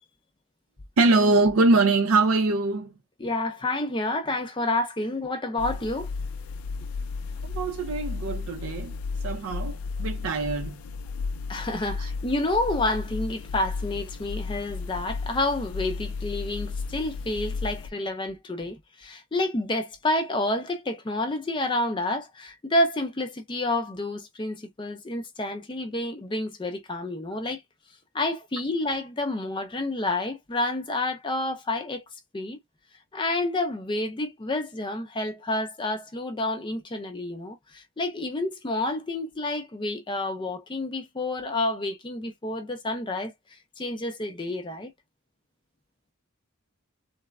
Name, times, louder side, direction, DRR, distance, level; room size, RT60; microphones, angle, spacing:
voice 1, 1.0-2.9 7.5-9.0 9.2-10.7 12.0-12.1, right 3 dB, 70° right, 0.4 m, -23 dB
voice 2, 3.2-6.1 11.5-27.6 28.1-32.0 32.3-32.6 33.1-43.3 43.8-44.9, left 2 dB, 20° left, 0.4 m, -29 dB
sound 1, 5.6-17.9, left 4 dB, 85° left, 0.4 m, -34 dB
3.2 x 2.0 x 2.2 m
head